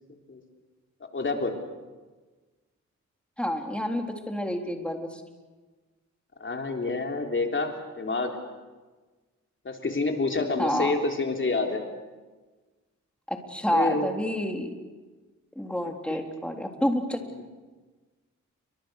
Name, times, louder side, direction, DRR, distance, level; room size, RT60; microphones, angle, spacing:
voice 1, 1.1-1.5 6.4-8.4 9.7-11.8 13.7-14.1 16.1-16.2, left 3 dB, 40° left, 3 dB, 3.7 m, -28 dB
voice 2, 3.4-5.2 10.6-10.9 13.3-14.7 15.5-17.2, left 1 dB, 5° left, 3 dB, 3.5 m, -28 dB
29.5 x 24.5 x 6.5 m, 1.3 s
wide cardioid pair, 95°, 30 cm